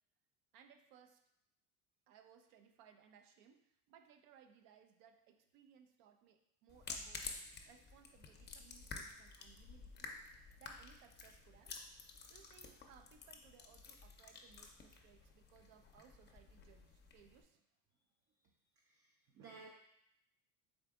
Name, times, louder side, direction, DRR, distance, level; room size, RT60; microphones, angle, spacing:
voice 1, 0.5-1.2 2.1-7.3 7.7-10.1 10.6-11.8 12.3-17.6, right 8 dB, 70° right, 7 dB, 0.6 m, -65 dB
sound 1, 6.7-17.4, left 4 dB, 25° left, 0.6 m, -52 dB
voice 2, 18.8-19.7, right 4 dB, 30° right, 1 dB, 0.5 m, -57 dB
3.9 x 3.3 x 3.5 m, 0.79 s
supercardioid pair, 85°, 45 cm